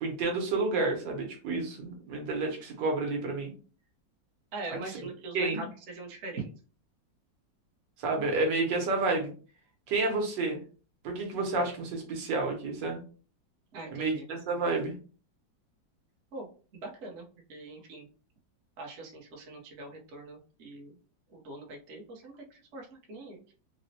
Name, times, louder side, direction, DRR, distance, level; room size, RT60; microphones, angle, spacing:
voice 1, 0.0-3.5 4.7-4.8 5.3-5.6 8.0-9.3 9.9-10.6 11.0-13.0 13.9-14.9, right 3 dB, 75° right, 1 dB, 1.5 m, -30 dB
voice 2, 4.5-6.5 13.7-14.3 16.3-18.1 18.8-21.0 21.3-23.5, right 3 dB, 55° right, 0 dB, 0.8 m, -42 dB
4.0 x 2.1 x 2.7 m, 0.38 s
omnidirectional pair, 2.0 m